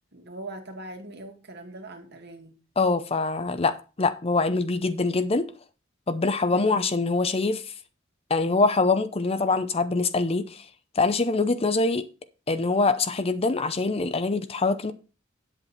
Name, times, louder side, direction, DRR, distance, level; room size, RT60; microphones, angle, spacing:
voice 1, 0.1-2.5 6.5-6.8 11.4-11.5, right 1 dB, 55° right, 2.1 m, -41 dB
voice 2, 2.8-5.5 6.1-7.6 8.3-10.6 11.0-12.0 12.5-14.9, left 3 dB, 30° left, 0.7 m, -24 dB
9.0 x 8.1 x 4.2 m
head